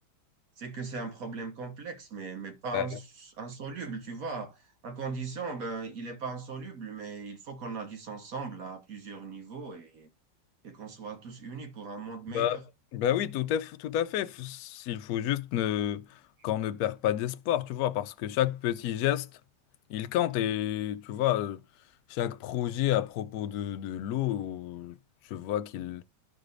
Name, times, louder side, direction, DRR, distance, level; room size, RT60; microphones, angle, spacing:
voice 1, 0.6-10.1 10.6-12.6, right 4 dB, 55° right, 1.6 m, -39 dB
voice 2, 12.9-16.2 16.4-19.3 19.9-21.6 22.1-25.0 25.3-26.0, left 12 dB, 70° left, 0.9 m, -30 dB
12.5 x 4.8 x 2.5 m
omnidirectional pair, 1.9 m